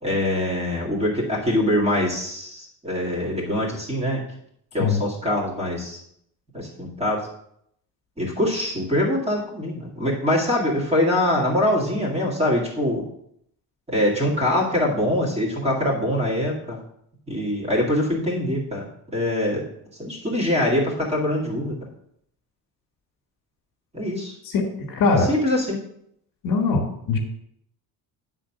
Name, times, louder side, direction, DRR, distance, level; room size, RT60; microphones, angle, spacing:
voice 1, 0.0-4.2 4.7-6.0 6.5-7.3 8.2-13.0 13.9-16.8 17.3-18.9 19.1-19.7 20.0-21.8 23.9-24.4 25.3-25.8, left 1 dB, 15° right, -4 dB, 2.2 m, -23 dB
voice 2, 24.4-25.3 26.4-27.2, left 4 dB, 60° left, 2 dB, 1.8 m, -22 dB
9.4 x 3.8 x 5.9 m, 0.72 s
cardioid pair, 160°, 39 cm